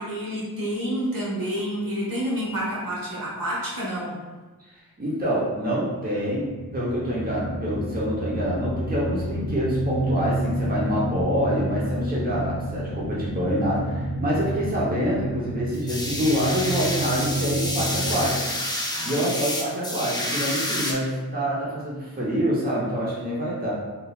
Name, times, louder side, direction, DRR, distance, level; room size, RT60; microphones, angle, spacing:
voice 1, 0.0-4.2 12.3-12.4 18.9-19.4 19.7-19.8, equal, 65° right, -6 dB, 1.4 m, -29 dB
voice 2, 5.0-18.5 19.0-23.7, equal, 25° right, -6 dB, 1.0 m, -26 dB
sound 1, 6.0-18.3, right 1 dB, 75° left, 0.6 m, -30 dB
sound 2, 15.7-20.9, left 1 dB, 10° left, 0.7 m, -29 dB
3.8 x 2.8 x 2.4 m, 1.3 s
cardioid pair, 45°, 36 cm